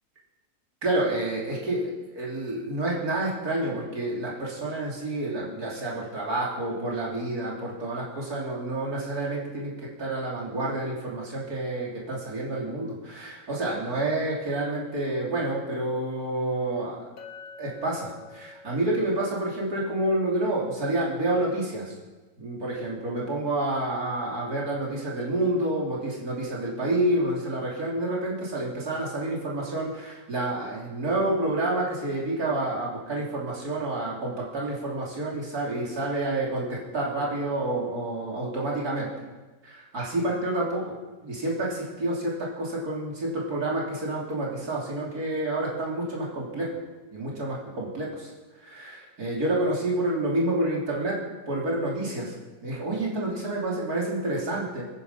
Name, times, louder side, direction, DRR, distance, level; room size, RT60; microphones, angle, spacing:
voice 1, 0.8-9.7 10.0-17.1 17.6-21.9 22.4-39.1 39.6-40.9 41.2-46.7 47.1-48.3 48.6-51.2 51.5-52.4 52.6-54.8, right 2 dB, 90° right, -4 dB, 3.7 m, -29 dB
Chink clink, 17.2-21.4, left 4 dB, 70° left, 1.9 m, -49 dB
22.5 x 9.9 x 5.6 m, 1.2 s
omnidirectional pair, 1.6 m